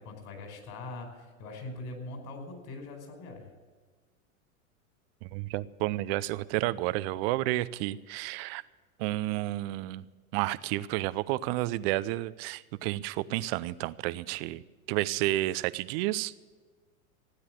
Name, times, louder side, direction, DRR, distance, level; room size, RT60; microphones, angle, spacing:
voice 1, 0.0-3.5, left 2 dB, 45° left, 3 dB, 5.0 m, -42 dB
voice 2, 5.2-8.6 9.0-10.1 10.3-14.6 14.9-16.3, right 17 dB, 45° right, 17 dB, 0.7 m, -31 dB
16.0 x 9.8 x 7.7 m, 1.5 s
hypercardioid pair, 105°, 42 cm